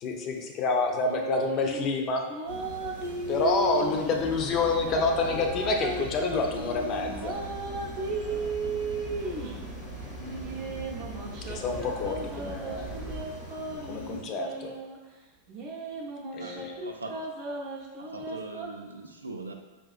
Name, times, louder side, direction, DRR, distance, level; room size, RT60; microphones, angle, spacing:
voice 1, 0.0-2.2 3.3-7.4 11.5-12.9 13.8-14.7 16.3-16.8, left 3 dB, 35° left, 2 dB, 0.5 m, -28 dB
sound 1, 1.0-1.9 2.3-4.2 4.8-9.6 10.2-15.0 15.5-18.7, right 3 dB, 45° right, 0.6 m, -35 dB
sound 2, 2.5-14.2, equal, 80° left, 0.9 m, -43 dB
sound 3, 4.2-13.2, right 2 dB, 10° right, 0.6 m, -42 dB
voice 2, 16.4-17.5 18.0-19.5, right 2 dB, 80° right, 4 dB, 0.3 m, -41 dB
5.0 x 2.4 x 2.4 m, 1.2 s
figure-of-eight pair, 90°, 0 cm